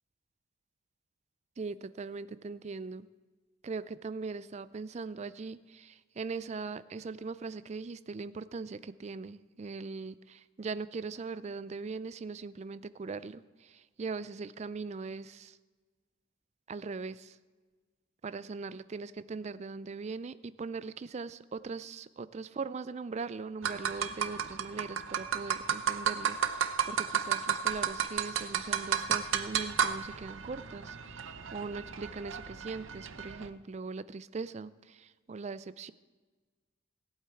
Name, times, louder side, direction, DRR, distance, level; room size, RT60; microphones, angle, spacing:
voice 1, 1.6-3.1 3.6-15.6 16.7-17.4 18.2-35.9, right 4 dB, 35° right, 15 dB, 0.3 m, -40 dB
sound 1, 23.6-33.5, right 8 dB, 70° right, 0.7 m, -33 dB
18.0 x 8.1 x 4.5 m, 1.4 s
head